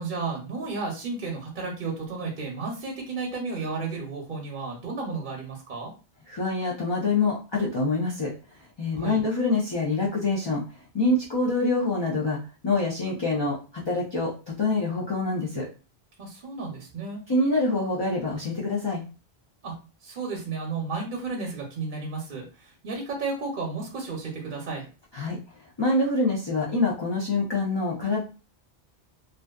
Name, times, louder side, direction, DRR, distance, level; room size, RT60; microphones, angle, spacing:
voice 1, 0.0-5.9 8.9-9.2 16.2-17.2 19.6-19.8 20.0-24.8, right 4 dB, 55° right, -1 dB, 0.7 m, -33 dB
voice 2, 6.3-10.6 10.9-12.4 12.6-15.7 17.3-19.0 25.1-25.4 25.8-28.2, left 2 dB, 40° left, -4 dB, 0.4 m, -26 dB
2.5 x 2.2 x 2.2 m, 0.34 s
omnidirectional pair, 1.0 m